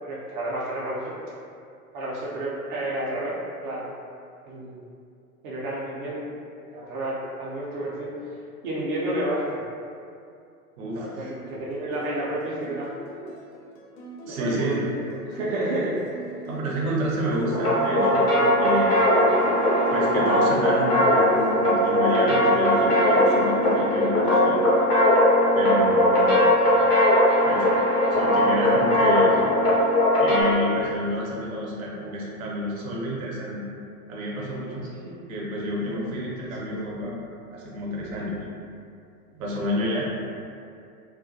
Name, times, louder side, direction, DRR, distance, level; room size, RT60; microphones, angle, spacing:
voice 1, 0.0-1.2 1.9-4.0 4.5-4.8 5.4-6.3 6.7-8.4 8.6-9.6 10.9-12.9 14.3-14.8 15.1-16.0 34.9-35.2 35.9-36.0 36.6-36.7, right 1 dB, 35° right, -6 dB, 0.4 m, -30 dB
voice 2, 10.8-11.3 14.3-14.9 16.5-18.3 18.6-19.0 19.9-24.6 25.5-26.5 27.4-27.7 28.1-29.5 30.2-33.6 34.1-34.9 35.3-37.2 37.5-38.3 39.3-40.1, equal, 65° right, -4 dB, 0.7 m, -29 dB
sound 1, 11.3-23.8, right 1 dB, 60° left, 0.7 m, -39 dB
sound 2, 17.5-30.4, left 1 dB, 90° left, 0.9 m, -20 dB
2.3 x 2.1 x 2.6 m, 2.5 s
figure-of-eight pair, 95°, 46 cm